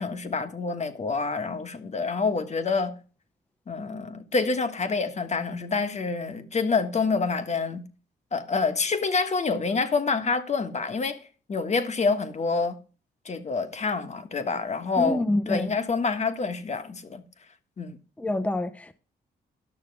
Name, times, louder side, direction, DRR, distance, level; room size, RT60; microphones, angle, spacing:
voice 1, 0.0-2.9 3.7-7.8 8.3-11.2 11.5-12.8 13.2-17.2 17.8-18.0, left 4 dB, 40° left, 1.3 m, -27 dB
voice 2, 15.0-15.7 18.2-19.0, left 1 dB, 5° left, 0.7 m, -27 dB
12.0 x 6.4 x 4.7 m
cardioid pair, 85°, 18 cm